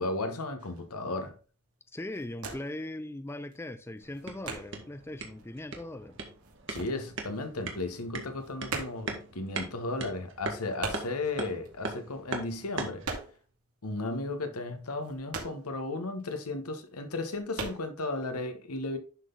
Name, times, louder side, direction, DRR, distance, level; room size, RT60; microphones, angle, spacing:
voice 1, 0.0-1.4 6.7-13.1 13.8-19.0, left 2 dB, 85° left, 1.2 m, -35 dB
sound 1, 0.6-0.9 1.4-1.6 1.9-2.9 3.1-5.0 5.4-7.6 7.9-13.6 13.9-14.0 14.4-16.3 16.7-16.8 17.2-17.8, right 4 dB, 85° right, 2.3 m, -40 dB
voice 2, 1.9-6.2, left 1 dB, 10° left, 0.3 m, -40 dB
sound 2, 4.0-13.1, right 3 dB, 55° right, 1.5 m, -40 dB
11.0 x 4.0 x 3.9 m
head